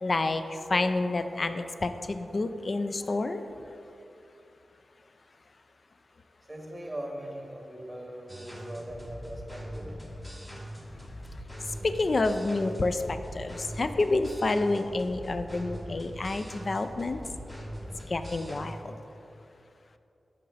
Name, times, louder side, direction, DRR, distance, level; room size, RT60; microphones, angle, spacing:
voice 1, 0.0-0.4 0.7-3.4 12.0-13.0 13.3-17.2 18.1-18.8, left 2 dB, 55° left, 9 dB, 0.4 m, -28 dB
voice 2, 6.4-10.0, right 1 dB, 15° right, 1 dB, 1.3 m, -40 dB
sound 1, 8.3-18.7, equal, 10° left, 1.5 m, -42 dB
6.6 x 5.4 x 4.1 m, 2.8 s
cardioid pair, 45°, 0 cm